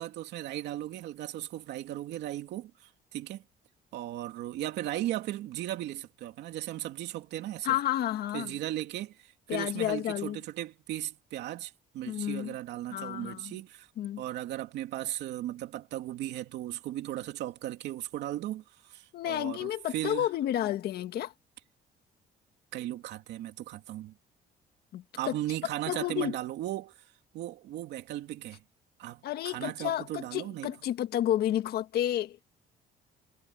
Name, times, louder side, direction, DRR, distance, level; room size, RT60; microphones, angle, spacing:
voice 1, 0.0-3.4 3.9-7.8 8.3-13.9 14.2-20.3 22.7-24.2 25.1-27.0 27.3-28.6 29.0-29.2 29.4-30.7, right 14 dB, 85° right, 2.7 m, -37 dB
voice 2, 7.6-8.6 9.5-10.4 12.1-12.6 12.9-13.5 14.0-14.2 19.1-21.3 24.9-25.3 25.9-26.4 29.2-32.4, left 12 dB, 65° left, 1.6 m, -31 dB
cardioid pair, 150°, 17 cm